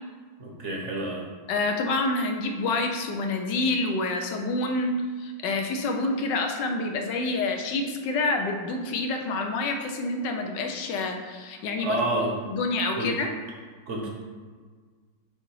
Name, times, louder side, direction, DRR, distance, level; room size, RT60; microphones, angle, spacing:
voice 1, 0.4-1.3 11.8-12.4 13.0-13.1 13.9-14.1, right 1 dB, 50° right, -2 dB, 1.1 m, -28 dB
voice 2, 1.5-12.0 12.4-13.3, left 2 dB, 75° left, 4 dB, 1.3 m, -27 dB
5.7 x 4.0 x 4.6 m, 1.5 s
omnidirectional pair, 1.9 m